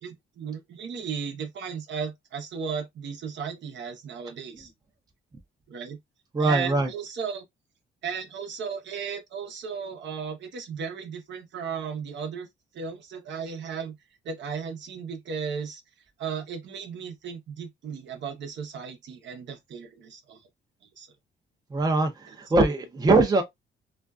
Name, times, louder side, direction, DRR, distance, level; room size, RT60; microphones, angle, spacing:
voice 1, 0.0-4.7 5.7-6.0 6.4-7.4 8.0-12.5 12.7-14.0 14.2-15.8 16.2-20.4 21.0-21.1 22.3-22.4, right 6 dB, 65° right, 0.8 m, -35 dB
voice 2, 6.3-6.9 21.7-22.1 22.5-23.4, right 2 dB, 20° right, 0.5 m, -21 dB
2.5 x 2.2 x 2.3 m
cardioid pair, 90°, 20 cm